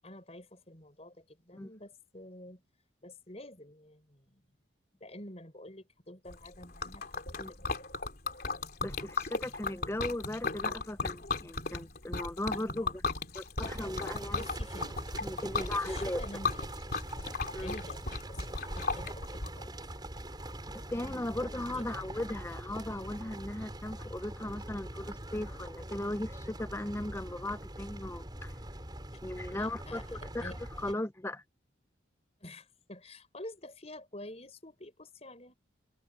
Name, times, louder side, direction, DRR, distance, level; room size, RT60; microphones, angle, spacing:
voice 1, 0.0-2.6 3.0-4.4 5.0-7.6 12.8-12.9 14.3-14.9 15.5-16.7 17.6-19.8 21.7-22.0 29.5-30.6 32.4-35.5, left 1 dB, 30° left, 6.3 m, -48 dB
Liquid, 6.3-19.5, left 4 dB, 50° left, 3.6 m, -36 dB
voice 2, 8.8-13.0 13.3-14.4 15.2-16.2 17.5-17.8 20.7-28.5 29.2-31.4, left 1 dB, 15° left, 0.5 m, -37 dB
sound 1, 13.6-30.9, right 1 dB, 20° right, 4.8 m, -43 dB
head